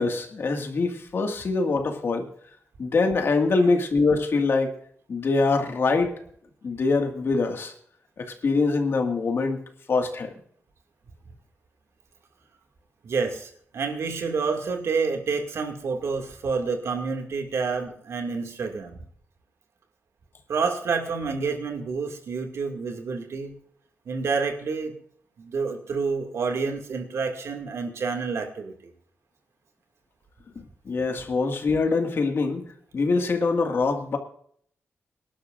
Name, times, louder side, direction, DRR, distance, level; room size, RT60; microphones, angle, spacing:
voice 1, 0.0-2.3 2.8-4.7 5.1-6.1 6.6-7.7 8.2-9.6 9.9-10.3 30.6-32.6 32.9-34.2, left 3 dB, 55° left, 5 dB, 1.9 m, -24 dB
voice 2, 13.0-19.0 20.5-23.6 24.1-24.9 25.4-28.9, right 4 dB, 75° right, 4 dB, 2.3 m, -28 dB
25.0 x 11.5 x 2.6 m, 0.62 s
wide cardioid pair, 135°, 5 cm